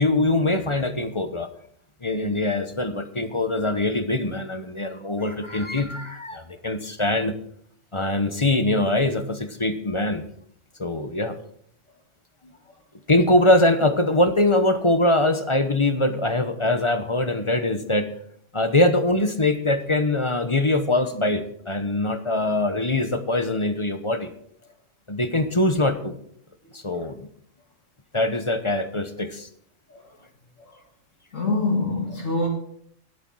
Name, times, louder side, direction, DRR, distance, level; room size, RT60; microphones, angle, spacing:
voice 1, 0.0-1.5 2.0-7.3 7.9-10.2 10.8-11.3 13.1-18.1 18.5-24.3 25.1-26.1 26.7-27.3 28.1-29.5, left 1 dB, 25° left, 0.8 m, -22 dB
voice 2, 31.3-32.5, left 2 dB, 65° left, 2.5 m, -25 dB
12.0 x 8.5 x 6.2 m
omnidirectional pair, 1.4 m